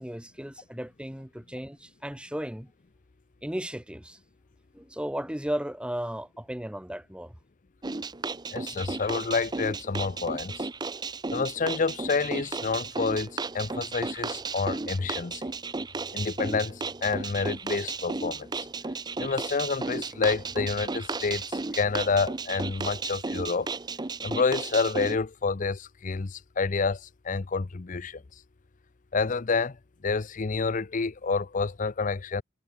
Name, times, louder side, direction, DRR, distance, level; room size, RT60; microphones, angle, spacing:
voice 1, 0.0-2.7 3.4-4.2 4.7-7.3, equal, 5° right, 1.8 m, -35 dB
sound 1, 7.8-25.2, right 3 dB, 20° right, 0.6 m, -34 dB
voice 2, 8.5-10.7 11.3-15.5 16.1-18.7 19.2-23.7 24.2-28.2 29.1-29.8 30.0-32.4, left 4 dB, 40° left, 0.6 m, -28 dB
head